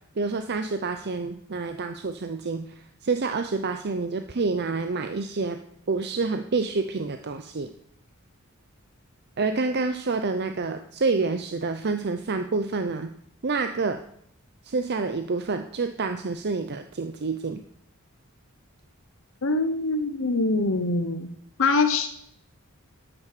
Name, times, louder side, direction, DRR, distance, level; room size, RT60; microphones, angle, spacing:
voice 1, 0.2-5.6 5.9-7.7 9.4-13.1 13.4-14.0 14.6-17.6, right 4 dB, 50° right, 8 dB, 0.7 m, -28 dB
voice 2, 19.4-21.3 21.6-22.1, left 3 dB, 65° left, 8 dB, 0.9 m, -24 dB
11.5 x 8.7 x 6.7 m, 0.70 s
head